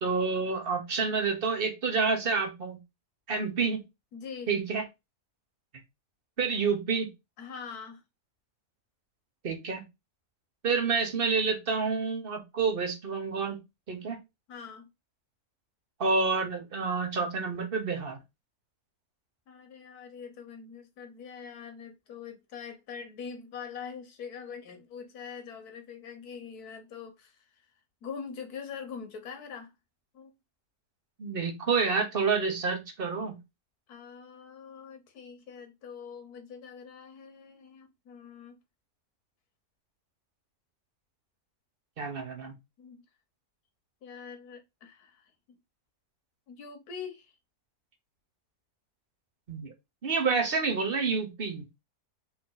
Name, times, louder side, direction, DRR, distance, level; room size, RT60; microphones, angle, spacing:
voice 1, 0.0-2.8 3.3-3.8 4.5-4.8 6.4-7.1 9.4-9.8 10.6-13.6 13.9-14.2 16.0-18.2 31.2-33.4 42.0-42.5 49.5-49.7 50.0-51.7, right 4 dB, 40° right, 1.2 m, -28 dB
voice 2, 4.1-4.5 7.4-8.0 14.5-14.9 19.5-27.4 28.0-29.7 30.1-30.3 33.9-38.6 42.8-43.0 44.0-45.3 46.5-47.3, left 6 dB, 80° left, 1.6 m, -43 dB
4.3 x 3.0 x 3.9 m
omnidirectional pair, 1.6 m